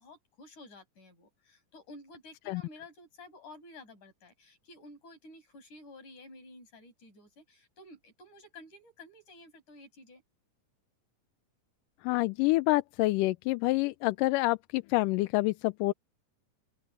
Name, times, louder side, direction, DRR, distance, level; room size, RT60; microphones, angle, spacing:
voice 1, 0.0-10.2, left 2 dB, 65° left, 9.1 m, -52 dB
voice 2, 12.0-15.9, left 20 dB, 85° left, 2.2 m, -27 dB
open air
omnidirectional pair, 3.8 m